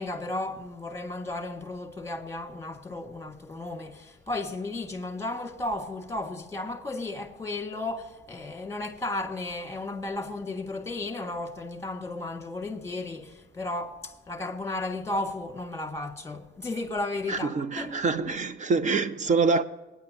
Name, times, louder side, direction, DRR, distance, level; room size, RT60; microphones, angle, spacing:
voice 1, 0.0-18.0, left 2 dB, 15° left, 1.7 m, -34 dB
voice 2, 17.3-19.6, right 4 dB, 35° right, 0.6 m, -25 dB
26.5 x 9.7 x 2.7 m
cardioid pair, 105°, 20 cm